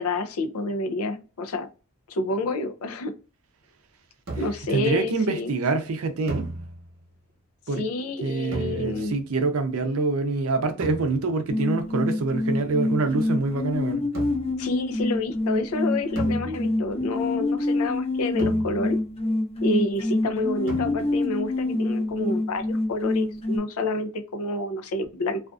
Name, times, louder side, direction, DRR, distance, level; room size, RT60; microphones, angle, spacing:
voice 1, 0.0-1.7 2.1-3.1 4.4-5.5 7.8-9.1 14.6-19.0 19.6-25.4, left 2 dB, 80° left, 0.4 m, -28 dB
sound 1, 4.3-4.8 6.3-7.1 8.5-9.3 10.8-11.5 14.1-14.7 16.2-17.0 18.4-19.2 20.7-21.4, right 2 dB, 55° right, 0.9 m, -36 dB
voice 2, 4.7-6.5 7.7-7.8 8.2-14.0, right 3 dB, 75° right, 0.5 m, -25 dB
sound 2, 11.5-23.6, left 2 dB, 25° left, 0.5 m, -26 dB
2.4 x 2.3 x 2.4 m
head